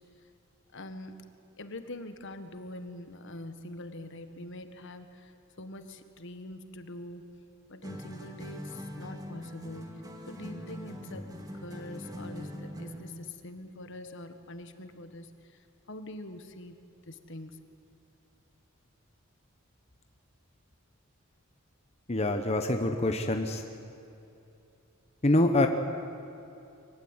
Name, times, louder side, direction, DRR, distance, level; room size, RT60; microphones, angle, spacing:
voice 1, 0.7-1.2 1.6-7.3 7.7-16.7 17.1-17.6, left 1 dB, 60° left, 8 dB, 1.5 m, -44 dB
sound 1, 7.8-13.2, equal, 20° right, 2.4 m, -42 dB
voice 2, 22.1-23.6 25.2-25.7, left 1 dB, 30° left, 5 dB, 1.0 m, -25 dB
23.5 x 16.0 x 9.6 m, 2.8 s
head